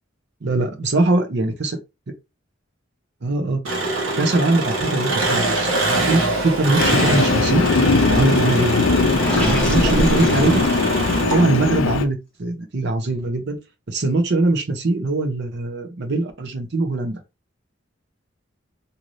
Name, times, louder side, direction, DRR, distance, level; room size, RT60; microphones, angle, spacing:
voice 1, 0.4-1.8 3.2-3.6 4.2-7.6 8.1-8.9 9.4-10.6 11.2-13.6 13.9-17.2, right 2 dB, 60° right, 0.7 m, -22 dB
Engine, 3.6-11.8, right 2 dB, 85° right, 1.1 m, -23 dB
Train, 6.8-12.0, left 4 dB, 80° left, 0.4 m, -20 dB
Gurgling, 9.1-11.3, equal, 5° left, 1.2 m, -24 dB
3.1 x 2.7 x 2.6 m
head